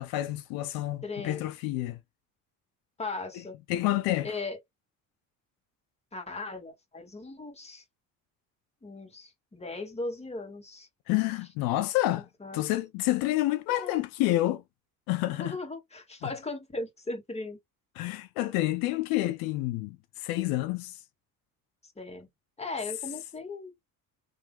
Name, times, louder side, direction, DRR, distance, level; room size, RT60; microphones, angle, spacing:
voice 1, 0.0-2.0 3.7-4.3 11.1-12.3 12.5-14.6 15.1-15.6 18.0-21.0, left 16 dB, 85° left, 0.5 m, -28 dB
voice 2, 1.0-1.5 3.0-3.6 4.2-4.6 6.1-7.8 8.8-10.9 12.4-12.6 13.7-14.0 15.4-17.6 21.8-22.3 22.6-23.7, left 3 dB, 20° left, 1.5 m, -38 dB
3.5 x 2.8 x 2.2 m
cardioid pair, 90°, 35 cm